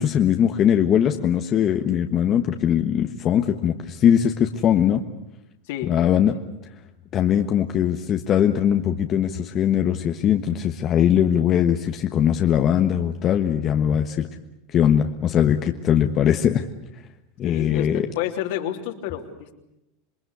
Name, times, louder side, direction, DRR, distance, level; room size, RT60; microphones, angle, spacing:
voice 1, 0.0-5.0 5.8-6.4 7.1-14.3 14.7-16.7 17.4-18.1, left 9 dB, 35° left, 5 dB, 1.3 m, -20 dB
voice 2, 17.4-19.6, left 11 dB, 70° left, 4 dB, 3.3 m, -30 dB
27.0 x 20.5 x 8.2 m, 0.90 s
supercardioid pair, 120°, 0 cm